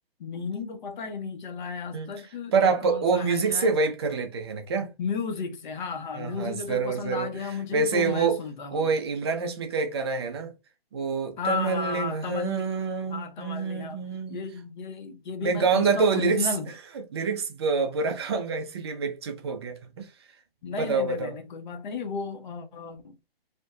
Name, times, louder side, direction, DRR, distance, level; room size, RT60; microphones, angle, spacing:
voice 1, 0.2-3.8 5.0-8.9 11.4-12.7 13.1-14.0 14.3-16.7 20.6-23.1, left 5 dB, 50° left, 0.7 m, -34 dB
voice 2, 2.5-4.9 6.1-8.4 8.7-10.5 10.9-14.4 15.4-16.5 17.1-20.1 20.8-21.4, right 4 dB, 25° right, 0.4 m, -26 dB
2.6 x 2.1 x 2.3 m
figure-of-eight pair, 135°, 30 cm